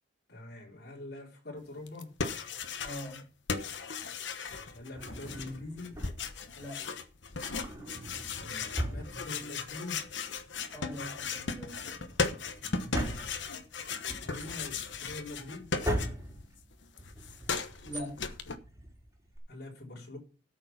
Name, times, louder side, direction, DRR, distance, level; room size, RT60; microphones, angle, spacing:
voice 1, 0.3-2.1 4.5-6.0 8.4-10.0 12.6-13.4 14.2-15.7 19.5-20.2, left 2 dB, 60° left, 4.0 m, -44 dB
sound 1, 1.9-3.2 3.5-16.4 16.7-18.6, left 5 dB, 85° left, 1.1 m, -37 dB
voice 2, 2.8-3.2 6.6-6.9 10.7-12.0 17.8-18.2, equal, 15° left, 5.9 m, -42 dB
Drawer open or close, 4.9-6.5 7.3-9.8 10.0-10.1 10.6-19.4, equal, 15° right, 4.1 m, -40 dB
13.0 x 6.7 x 5.8 m
head